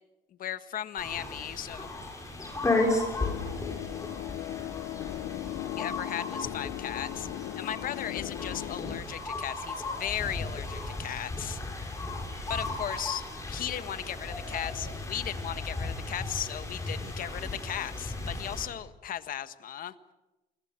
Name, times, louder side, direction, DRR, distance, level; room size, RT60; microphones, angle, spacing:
voice 1, 0.4-1.9 5.8-11.6 12.5-19.9, left 10 dB, 55° left, 12 dB, 1.5 m, -36 dB
sound 1, 1.0-18.7, left 2 dB, 20° left, 7.3 m, -35 dB
sound 2, 3.2-9.0, left 15 dB, 85° left, 0.9 m, -38 dB
28.5 x 21.5 x 7.7 m, 1.0 s
cardioid pair, 110°, 17 cm